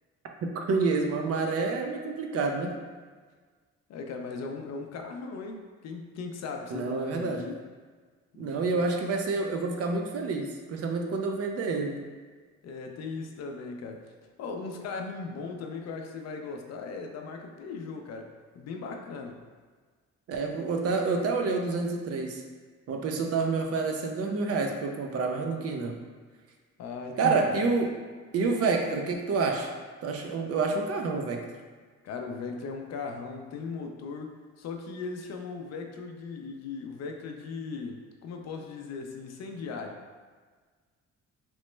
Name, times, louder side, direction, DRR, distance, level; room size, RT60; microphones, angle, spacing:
voice 1, 0.4-2.7 6.7-7.4 8.4-12.1 20.3-22.4 22.9-26.0 27.2-28.0 28.3-29.7 30.0-31.4, right 4 dB, 55° right, 2 dB, 0.5 m, -28 dB
voice 2, 3.9-7.6 8.4-8.6 12.6-14.0 14.4-18.3 18.5-19.4 26.8-27.7 32.0-34.3 34.6-40.0, left 4 dB, 60° left, 3 dB, 0.5 m, -38 dB
3.0 x 2.0 x 3.1 m, 1.5 s
cardioid pair, 90°, 30 cm